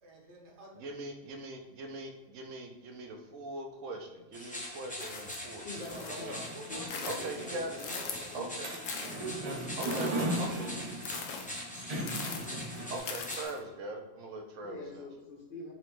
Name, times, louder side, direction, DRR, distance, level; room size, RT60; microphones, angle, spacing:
voice 1, 0.0-0.8 5.0-5.1 5.9-8.3 9.0-11.3, right 1 dB, 65° right, -2 dB, 1.2 m, -51 dB
voice 2, 0.7-6.5 7.1-8.0 8.3-8.7 9.8-10.1 10.4-10.5 12.9-15.1, right 2 dB, 80° right, 3 dB, 1.0 m, -41 dB
sound 1, 4.3-13.5, left 1 dB, 10° left, 0.3 m, -43 dB
sound 2, 5.0-6.3 6.7-8.4 8.8-13.6, left 6 dB, 80° left, 1.0 m, -42 dB
voice 3, 5.6-9.2 14.6-15.7, left 2 dB, 55° left, -1 dB, 0.6 m, -46 dB
sound 3, 5.7-13.0, right 1 dB, 35° right, 0.7 m, -38 dB
4.2 x 3.0 x 3.0 m, 1.2 s
omnidirectional pair, 1.3 m